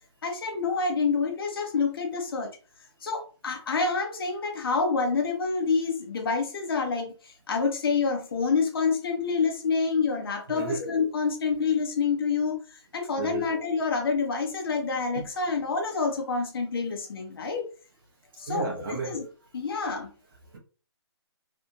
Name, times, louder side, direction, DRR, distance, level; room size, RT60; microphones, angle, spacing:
voice 1, 0.2-2.5 3.0-17.7 18.4-18.7 19.0-19.2 19.5-20.1, left 4 dB, 55° left, 3 dB, 1.0 m, -27 dB
voice 2, 10.5-10.8 13.2-13.5 15.1-15.3 18.5-19.2, right 3 dB, 50° right, 0 dB, 1.3 m, -32 dB
3.5 x 2.5 x 2.9 m, 0.36 s
hypercardioid pair, 155°, 15 cm